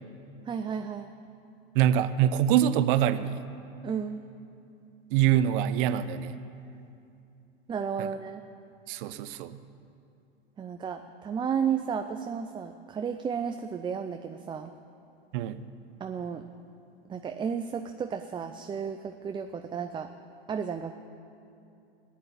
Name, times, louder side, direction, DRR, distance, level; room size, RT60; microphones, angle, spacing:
voice 1, 0.5-1.1 3.8-4.2 7.7-8.4 10.6-14.7 16.0-16.4 17.1-20.1 20.5-20.9, right 7 dB, 15° right, 7 dB, 0.5 m, -33 dB
voice 2, 1.7-3.4 5.1-6.3 8.0-8.1 8.9-9.6 15.3-15.6, right 10 dB, 60° right, 13 dB, 0.8 m, -24 dB
13.5 x 10.5 x 8.5 m, 2.7 s
hypercardioid pair, 100°, 30 cm